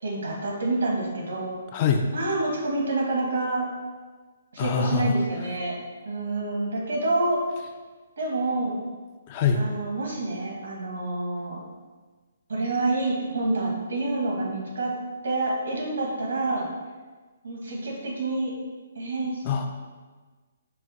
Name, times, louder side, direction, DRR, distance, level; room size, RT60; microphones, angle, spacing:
voice 1, 0.0-1.6 2.1-3.7 4.5-5.8 6.0-7.4 8.2-8.8 9.5-11.6 12.5-14.9 15.2-16.7 17.4-18.5 18.9-19.4, right 2 dB, 80° right, -2 dB, 1.2 m, -27 dB
voice 2, 1.7-2.0 4.6-5.2 9.3-9.6 19.4-19.7, left 6 dB, 30° left, 4 dB, 0.3 m, -24 dB
4.7 x 2.1 x 4.0 m, 1.3 s
hypercardioid pair, 165°, 0 cm